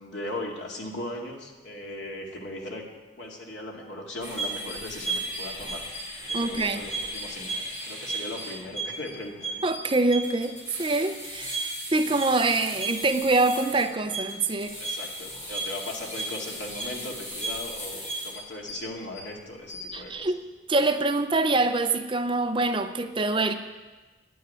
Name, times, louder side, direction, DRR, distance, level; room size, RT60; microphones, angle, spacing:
voice 1, 0.0-2.8 3.2-5.8 6.2-9.6 14.8-20.2, left 1 dB, 80° left, -1 dB, 2.4 m, -38 dB
sound 1, 4.2-19.2 19.6-20.0, right 2 dB, 40° left, 5.4 m, -35 dB
voice 2, 6.3-6.8 9.6-14.8 19.9-20.4 20.7-23.5, right 2 dB, 30° right, 8 dB, 0.6 m, -25 dB
10.5 x 9.3 x 9.6 m, 1.3 s
head